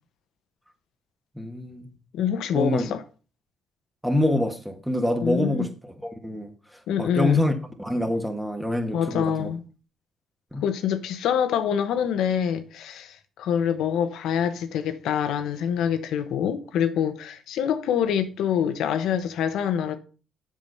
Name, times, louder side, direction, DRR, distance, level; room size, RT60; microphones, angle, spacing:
voice 1, 1.4-2.0 2.5-2.8 4.0-5.7 6.2-6.5 7.0-7.5 7.8-9.5 10.5-10.6, left 1 dB, 5° right, 1.5 m, -25 dB
voice 2, 2.1-3.0 5.2-5.7 6.9-7.5 8.9-9.6 10.6-20.0, left 8 dB, 80° left, 1.1 m, -25 dB
7.5 x 6.1 x 5.4 m
cardioid pair, 90°, 0 cm